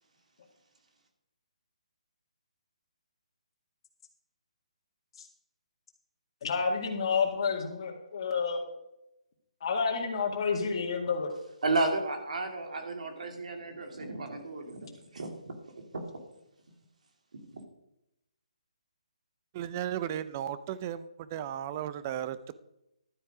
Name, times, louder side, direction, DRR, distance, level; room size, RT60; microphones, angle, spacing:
voice 1, 6.4-8.6 9.6-11.3, left 5 dB, 40° left, 0 dB, 2.1 m, -29 dB
voice 2, 11.6-14.9 15.1-15.5 15.9-16.0 17.3-17.6, right 2 dB, 70° right, 4 dB, 2.7 m, -33 dB
voice 3, 19.5-22.5, right 10 dB, 20° right, 15 dB, 0.5 m, -35 dB
12.0 x 8.2 x 5.0 m, 0.86 s
hypercardioid pair, 170°, 4 cm